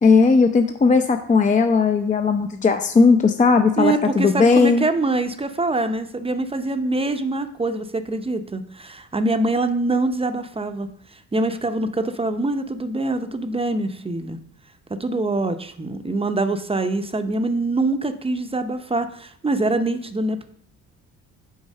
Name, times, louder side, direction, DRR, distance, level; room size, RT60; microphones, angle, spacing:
voice 1, 0.0-4.8, left 4 dB, 25° left, 6 dB, 0.6 m, -17 dB
voice 2, 3.8-14.4 15.0-20.4, right 2 dB, 20° right, 8 dB, 0.7 m, -24 dB
6.4 x 4.6 x 6.4 m, 0.64 s
cardioid pair, 90°, 30 cm